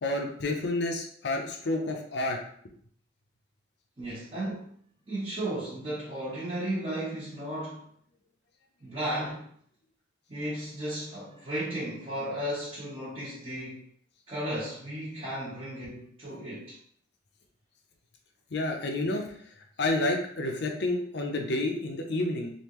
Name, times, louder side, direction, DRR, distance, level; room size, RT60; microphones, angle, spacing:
voice 1, 0.0-2.4 18.5-19.3 19.8-22.5, left 2 dB, 60° left, 2 dB, 0.6 m, -29 dB
voice 2, 4.0-4.7 5.1-7.9 8.8-9.5 10.3-13.8 14.3-16.8, right 1 dB, 30° right, -12 dB, 1.3 m, -34 dB
3.4 x 2.5 x 3.0 m, 0.62 s
head